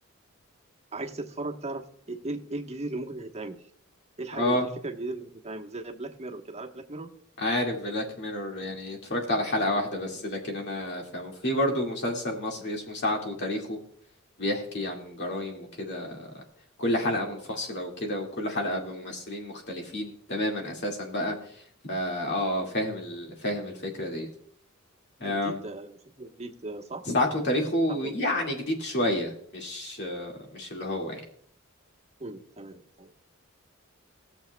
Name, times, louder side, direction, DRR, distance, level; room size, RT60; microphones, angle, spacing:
voice 1, 0.9-3.7 4.2-7.1 17.2-17.4 25.2-27.0 28.0-28.1 32.2-33.1, right 2 dB, 30° right, 2 dB, 1.1 m, -37 dB
voice 2, 4.3-4.7 7.4-13.8 14.4-16.4 16.8-21.3 21.9-24.3 25.2-25.6 27.1-31.2, left 1 dB, 55° left, 1 dB, 2.1 m, -30 dB
19.0 x 7.2 x 2.3 m, 0.64 s
head